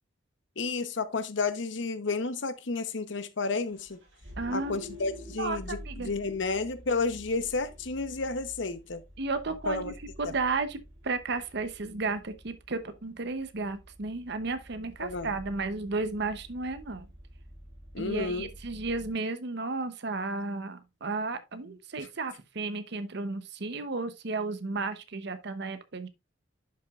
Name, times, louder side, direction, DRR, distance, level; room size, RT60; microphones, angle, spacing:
voice 1, 0.6-4.0 4.5-9.0 9.7-9.9 10.3-10.4 15.0-15.3 17.9-18.5 22.0-22.1, left 3 dB, 65° left, 0.9 m, -31 dB
Vehicle, 3.6-19.1, equal, 75° right, 5.5 m, -49 dB
voice 2, 4.4-4.8 5.4-6.1 9.2-17.1 18.0-26.1, right 3 dB, 55° right, 0.8 m, -33 dB
11.0 x 5.8 x 2.4 m
head